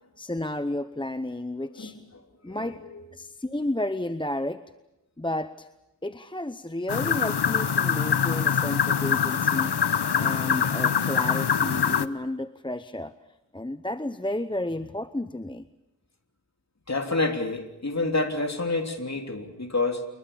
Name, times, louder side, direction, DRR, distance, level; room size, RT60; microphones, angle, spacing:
voice 1, 0.2-2.0 2.4-2.8 3.1-4.6 5.2-5.7 6.0-9.7 10.2-13.1 13.5-15.7, left 1 dB, 10° left, 11 dB, 0.9 m, -32 dB
voice 2, 1.8-3.0 16.9-20.1, left 2 dB, 35° left, 4 dB, 3.3 m, -29 dB
sound 1, 6.9-12.1, left 7 dB, 65° left, 1.0 m, -24 dB
28.0 x 22.5 x 7.0 m, 0.90 s
wide cardioid pair, 55°, 43 cm